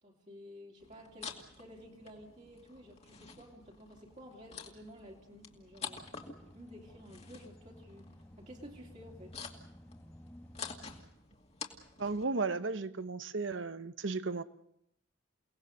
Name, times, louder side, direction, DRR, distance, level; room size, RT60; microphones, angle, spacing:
voice 1, 0.0-6.1 6.5-8.1 8.4-9.4, equal, 35° right, 3.0 m, -52 dB
sound 1, 0.8-12.3, left 5 dB, 30° left, 2.3 m, -49 dB
sound 2, 5.9-11.1, equal, 10° left, 1.2 m, -55 dB
voice 2, 12.0-14.4, right 3 dB, 70° right, 0.9 m, -34 dB
29.0 x 18.5 x 6.6 m
head